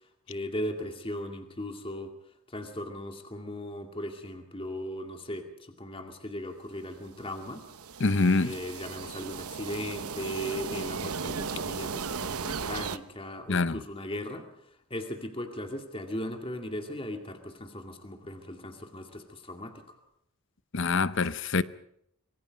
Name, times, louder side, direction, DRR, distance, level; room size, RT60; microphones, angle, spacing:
voice 1, 0.3-2.1 2.5-7.7 8.4-14.4 14.9-20.0, left 1 dB, 25° left, 2.3 m, -37 dB
sound 1, 7.1-13.0, right 5 dB, 80° right, 0.9 m, -36 dB
voice 2, 8.0-8.5 13.5-13.8 20.7-21.6, left 3 dB, 55° left, 0.8 m, -25 dB
25.5 x 22.5 x 5.3 m
head